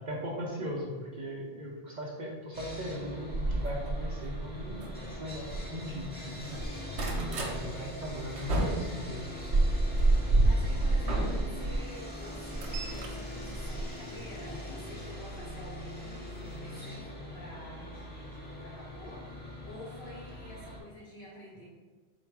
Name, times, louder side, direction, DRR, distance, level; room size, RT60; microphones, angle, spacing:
voice 1, 0.1-6.6 7.3-9.6, equal, 50° right, -2 dB, 0.7 m, -39 dB
Sawing, 2.5-20.8, left 1 dB, 10° left, 0.6 m, -42 dB
sound 1, 3.3-6.1 6.4-7.6 8.0-11.8 12.2-14.4 15.4-15.6 16.1-16.2 16.4-16.5, right 2 dB, 75° right, 1.0 m, -29 dB
voice 2, 10.4-21.6, left 1 dB, 65° left, -6 dB, 1.1 m, -49 dB
4.7 x 2.2 x 4.6 m, 1.4 s
omnidirectional pair, 1.2 m